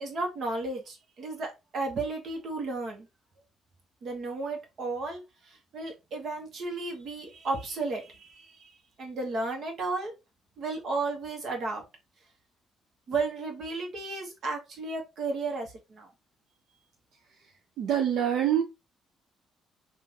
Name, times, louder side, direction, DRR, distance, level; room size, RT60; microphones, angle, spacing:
voice 1, 0.0-3.1 4.0-8.7 9.0-10.1 10.6-11.8 13.1-16.1, right 3 dB, 60° right, 1.3 m, -33 dB
voice 2, 17.8-18.6, right 10 dB, 80° right, 0.6 m, -25 dB
3.8 x 2.6 x 3.0 m
cardioid pair, 90°, 0 cm